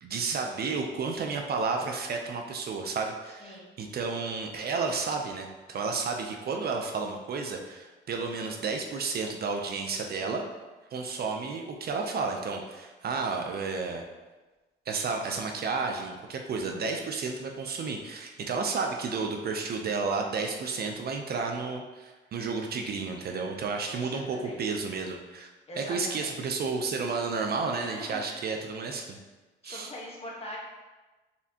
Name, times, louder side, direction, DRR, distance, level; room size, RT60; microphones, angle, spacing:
voice 1, 0.0-10.4 10.9-14.0 14.9-25.5 25.8-29.2 29.6-29.9, right 4 dB, 55° right, 3 dB, 0.5 m, -32 dB
voice 2, 23.9-24.6 25.7-26.3 27.8-28.6 29.6-30.6, equal, 30° left, -3 dB, 1.2 m, -42 dB
4.2 x 3.5 x 2.8 m, 1.2 s
cardioid pair, 90°, 20 cm